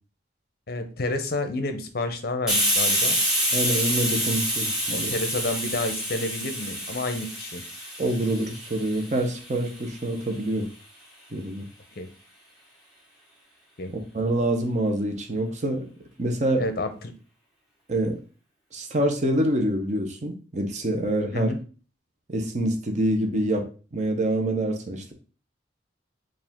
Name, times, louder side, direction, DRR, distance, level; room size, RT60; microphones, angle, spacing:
voice 1, 0.7-3.2 4.9-7.6 12.0-12.1 13.8-13.9 16.6-17.1 21.3-21.6, left 2 dB, 50° left, 8 dB, 0.6 m, -30 dB
Hiss, 2.5-9.9, equal, 5° right, 1.2 m, -27 dB
voice 2, 3.5-5.1 8.0-10.7 11.3-11.7 13.9-15.9 16.2-16.6 17.9-18.2 18.7-21.5 22.3-25.1, right 1 dB, 40° right, 4 dB, 0.7 m, -26 dB
4.8 x 2.5 x 3.5 m, 0.37 s
head